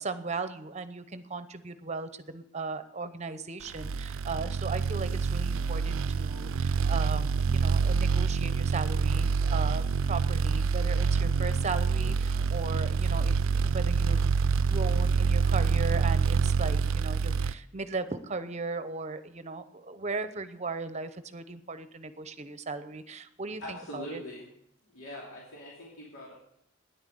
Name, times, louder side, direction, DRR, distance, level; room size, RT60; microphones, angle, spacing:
voice 1, 0.0-14.2 14.6-24.2, right 3 dB, 35° right, 12 dB, 0.8 m, -37 dB
sound 1, 3.7-17.5, right 5 dB, 80° right, 0.5 m, -26 dB
voice 2, 23.6-24.5 24.8-26.3, equal, 85° left, -5 dB, 3.0 m, -42 dB
10.5 x 8.9 x 8.1 m, 0.73 s
head